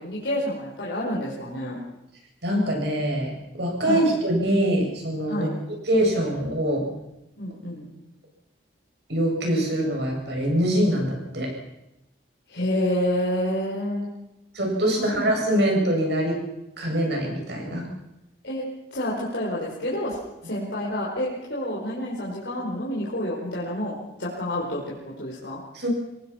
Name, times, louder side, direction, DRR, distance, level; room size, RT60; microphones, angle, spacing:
voice 1, 0.0-1.8 3.8-4.1 5.3-5.5 7.4-7.9 12.5-14.1 15.0-15.5 18.4-18.6 18.9-25.6, left 1 dB, 70° left, -5 dB, 5.2 m, -29 dB
voice 2, 2.4-5.5 5.8-6.9 9.1-11.5 14.5-16.4 16.8-17.9 25.7-25.9, right 1 dB, 65° right, 0 dB, 7.9 m, -24 dB
26.0 x 19.0 x 6.0 m, 0.92 s
head